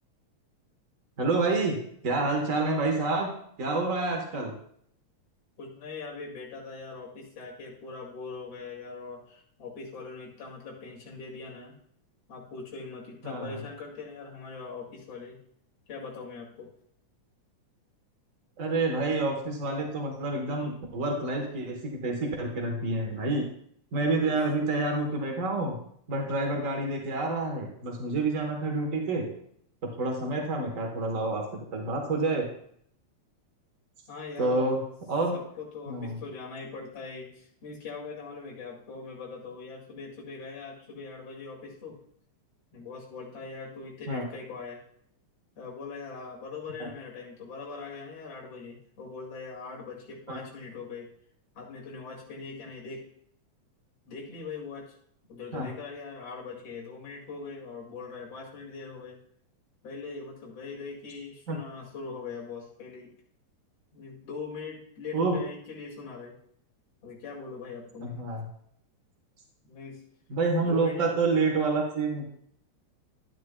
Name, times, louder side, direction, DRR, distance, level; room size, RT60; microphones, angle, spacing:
voice 1, 1.2-1.8 2.0-3.3 3.6-4.5 13.2-13.6 18.6-23.5 23.9-25.8 26.1-29.3 30.0-31.4 31.7-32.5 34.4-34.8 35.1-35.3 35.9-36.2 44.1-44.2 46.8-46.9 50.3-50.4 55.5-55.7 61.5-61.6 65.1-65.4 68.0-68.4 70.3-72.3, right 3 dB, 75° right, 1 dB, 0.7 m, -28 dB
voice 2, 5.6-11.8 12.3-15.4 15.9-16.7 24.2-24.4 25.8-25.9 34.1-34.7 35.3-42.0 42.7-44.8 45.6-51.1 51.5-53.1 54.1-54.9 55.3-59.2 59.8-63.1 63.9-66.4 67.0-68.1 69.6-70.0 70.6-71.1, left 4 dB, 55° left, -3 dB, 3.1 m, -41 dB
12.0 x 9.3 x 2.2 m, 0.66 s
omnidirectional pair, 3.3 m